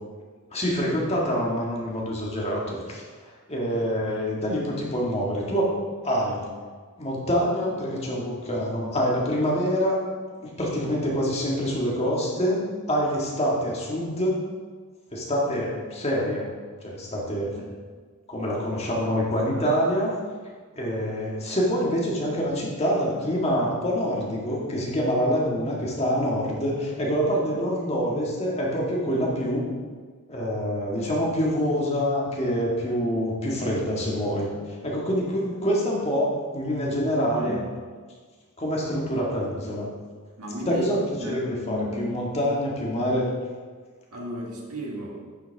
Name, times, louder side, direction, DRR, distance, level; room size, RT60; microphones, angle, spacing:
voice 1, 0.5-5.7 6.0-6.5 7.0-10.0 10.4-12.6 12.9-14.4 15.1-16.5 16.8-17.6 18.3-20.1 20.8-29.6 30.3-37.6 38.6-39.9 40.7-43.3, equal, 30° left, -4 dB, 1.8 m, -26 dB
voice 2, 40.4-40.9 41.2-42.0 44.1-45.3, equal, 85° right, -2 dB, 1.8 m, -35 dB
9.2 x 7.4 x 3.5 m, 1.5 s
head